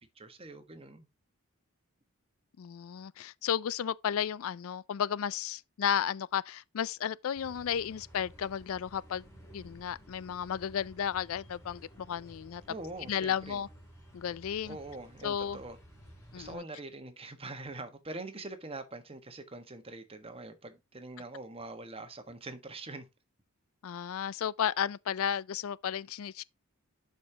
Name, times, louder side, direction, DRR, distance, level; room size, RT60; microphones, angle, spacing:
voice 1, 0.1-1.1 12.7-13.6 14.7-15.8 16.3-23.1, right 2 dB, 25° right, 1.4 m, -44 dB
voice 2, 2.6-9.3 9.5-12.6 13.1-13.7 14.1-14.8 15.2-15.6 16.3-16.6 23.8-26.4, left 8 dB, 75° left, 0.4 m, -33 dB
sound 1, 7.3-16.6, equal, 15° left, 5.9 m, -54 dB
11.5 x 5.3 x 2.8 m
head